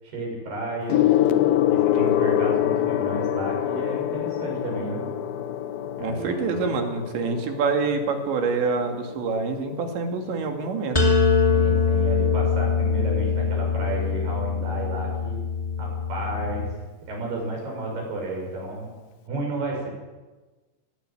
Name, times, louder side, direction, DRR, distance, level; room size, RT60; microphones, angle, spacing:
voice 1, 0.0-1.0 1.6-5.0 6.0-6.8 11.5-15.4 15.8-16.8 17.1-18.9 19.3-19.9, right 2 dB, 60° right, 0 dB, 8.9 m, -32 dB
Gong, 0.9-10.7 11.6-11.9, left 11 dB, 70° left, 2.4 m, -25 dB
voice 2, 6.0-11.0, right 4 dB, 85° right, 4 dB, 4.7 m, -26 dB
sound 1, 10.9-16.7, left 5 dB, 10° left, 2.0 m, -23 dB
20.0 x 18.0 x 9.3 m, 1.2 s
omnidirectional pair, 5.0 m